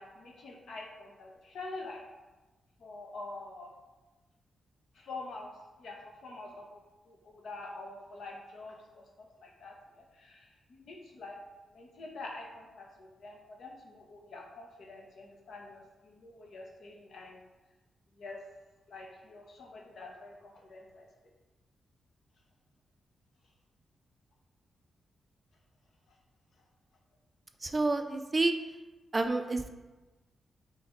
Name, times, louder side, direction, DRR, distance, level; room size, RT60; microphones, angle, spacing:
voice 1, 0.0-2.0 2.8-3.7 4.9-5.5 5.8-6.8 7.1-9.7 10.1-11.4 11.7-17.4 18.2-18.4 18.9-21.1, left 2 dB, 70° left, 0 dB, 0.9 m, -46 dB
voice 2, 27.6-28.6 29.1-29.7, right 2 dB, 20° right, 7 dB, 0.4 m, -29 dB
4.1 x 3.3 x 3.9 m, 1.1 s
wide cardioid pair, 125°, 0 cm